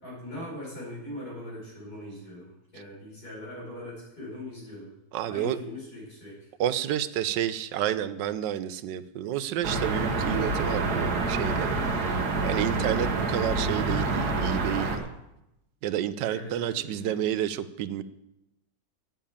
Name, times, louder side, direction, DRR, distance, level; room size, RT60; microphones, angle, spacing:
voice 1, 0.0-4.9 5.2-6.5 16.3-17.2, left 1 dB, 60° left, -5 dB, 5.8 m, -41 dB
voice 2, 5.1-5.6 6.6-11.7 12.4-15.1 15.8-18.0, right 11 dB, 85° right, 14 dB, 1.3 m, -30 dB
sound 1, 9.6-15.0, right 3 dB, 65° right, 1.9 m, -27 dB
9.1 x 7.4 x 8.6 m, 0.87 s
omnidirectional pair, 1.9 m